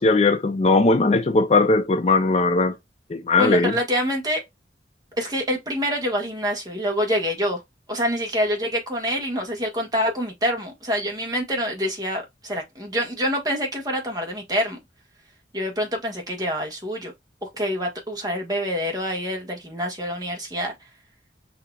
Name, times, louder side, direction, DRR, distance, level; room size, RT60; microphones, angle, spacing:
voice 1, 0.0-2.7 3.1-3.7, left 3 dB, 35° left, 0.4 m, -19 dB
voice 2, 3.4-4.4 5.2-7.6 7.9-14.8 15.5-17.1 17.5-20.7, equal, 20° right, 1.4 m, -26 dB
5.6 x 2.8 x 2.3 m
head